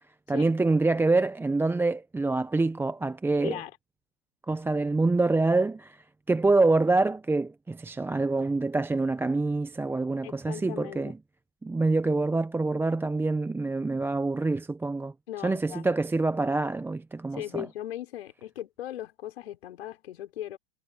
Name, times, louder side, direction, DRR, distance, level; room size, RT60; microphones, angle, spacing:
voice 1, 0.3-3.6 4.5-11.2 11.6-15.1 15.4-17.7, right 3 dB, 5° right, 0.7 m, -26 dB
voice 2, 3.4-3.7 10.2-11.1 15.3-15.9 17.3-20.6, left 12 dB, 75° left, 5.8 m, -38 dB
hypercardioid pair, 105°, 31 cm